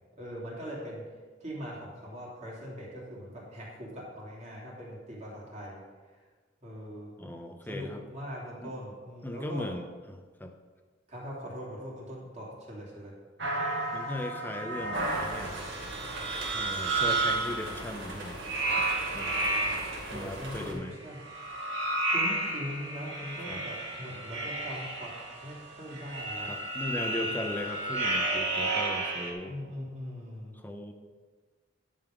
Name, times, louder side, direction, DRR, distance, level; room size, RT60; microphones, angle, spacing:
voice 1, 0.2-1.0 1.4-5.8 6.6-7.1 7.6-9.6 11.1-13.1 20.1-21.2 22.1-25.1 25.4-26.5 26.9-27.2 29.5-30.6, equal, 40° right, -5 dB, 2.9 m, -41 dB
voice 2, 7.2-8.0 8.6-8.7 9.2-10.5 13.9-15.7 16.5-18.4 19.1-19.5 20.1-21.0 23.5-23.6 26.4-29.6 30.5-30.9, left 1 dB, 10° left, 5 dB, 0.7 m, -38 dB
sound 1, 13.4-17.7 18.4-20.1 21.1-29.3, right 2 dB, 65° right, 1.7 m, -32 dB
sound 2, 14.9-20.7, right 1 dB, 90° right, 3.1 m, -40 dB
11.0 x 5.6 x 5.1 m, 1.4 s
head